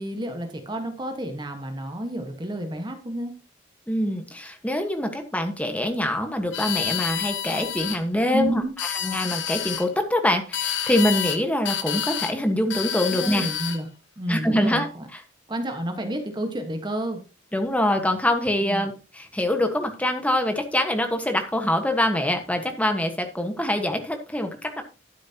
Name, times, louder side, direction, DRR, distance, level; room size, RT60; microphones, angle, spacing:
voice 1, 0.0-3.3 8.3-8.7 13.1-13.9 14.2-15.1 15.5-17.2 18.6-18.8, right 1 dB, 25° right, 5 dB, 1.4 m, -30 dB
voice 2, 3.9-8.6 9.0-13.5 14.3-15.2 17.5-24.8, left 1 dB, 5° left, 5 dB, 1.4 m, -24 dB
sound 1, 6.5-8.0 8.6-9.9 10.5-11.4 11.6-12.4 12.7-13.8, left 10 dB, 70° left, 1.0 m, -29 dB
12.0 x 9.3 x 2.9 m, 0.32 s
head